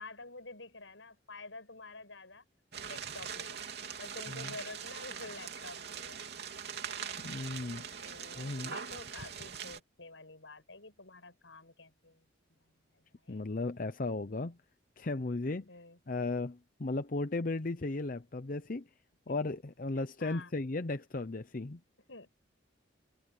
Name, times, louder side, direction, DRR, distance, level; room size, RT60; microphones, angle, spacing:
voice 1, 0.0-2.4 2.8-3.7 4.0-6.2 8.0-12.6 12.9-13.5 15.7-16.0 19.3-19.5 20.0-20.5 22.1-22.3, left 3 dB, 80° left, 7.0 m, -49 dB
sound 1, 2.7-9.8, right 7 dB, 60° right, 3.5 m, -42 dB
voice 2, 7.2-7.9 8.4-8.8 13.3-14.6 15.0-15.7 16.1-18.9 19.3-21.8, left 2 dB, 45° left, 0.7 m, -35 dB
head